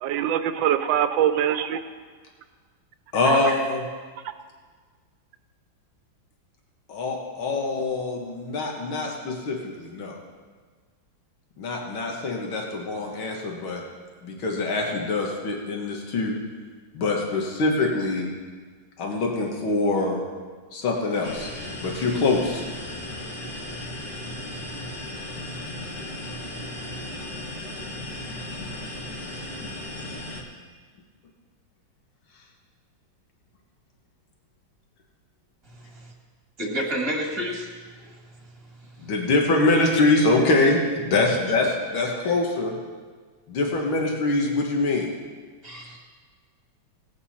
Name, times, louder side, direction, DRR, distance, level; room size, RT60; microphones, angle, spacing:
voice 1, 0.0-1.8 3.3-3.5, right 10 dB, 75° right, 10 dB, 1.4 m, -23 dB
voice 2, 3.1-3.8 6.9-10.2 11.6-13.8 14.2-16.4 16.9-18.3 19.0-20.2 20.7-21.5 21.8-22.6 39.0-42.8 43.5-45.1, left 2 dB, 85° left, 0 dB, 2.3 m, -24 dB
sound 1, 21.2-30.4, left 1 dB, 50° left, 1.9 m, -36 dB
voice 3, 35.8-36.1 36.6-37.7 38.0-38.2 45.6-46.0, equal, 15° right, -1 dB, 1.5 m, -30 dB
18.5 x 8.6 x 4.3 m, 1.5 s
omnidirectional pair, 2.2 m